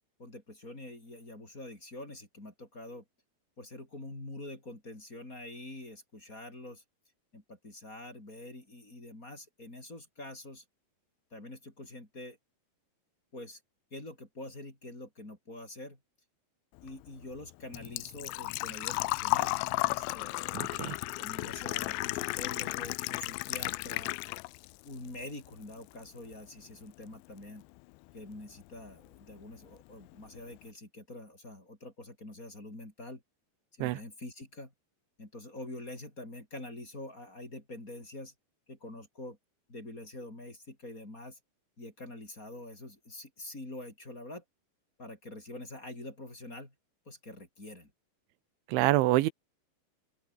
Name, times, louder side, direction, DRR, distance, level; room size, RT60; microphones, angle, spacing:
voice 1, 0.2-3.0 3.6-6.8 7.3-10.6 11.3-12.4 13.3-13.6 13.9-16.0 16.8-19.5 19.8-20.4 21.2-24.2 24.8-27.6 28.1-33.2 33.8-34.7 35.2-38.3 38.7-39.4 39.7-41.4 41.8-44.4 45.0-46.7 47.1-47.9, left 1 dB, 20° left, 5.5 m, -45 dB
Engine / Trickle dribble / Fill (with liquid), 16.8-24.7 25.1-26.0 26.3-26.4 28.3-28.4 28.6-29.0 29.3-29.4 29.7-29.8, left 24 dB, 85° left, 2.8 m, -34 dB
voice 2, 20.5-21.0 33.8-34.0 48.7-49.3, right 17 dB, 90° right, 3.5 m, -26 dB
open air
omnidirectional pair, 5.2 m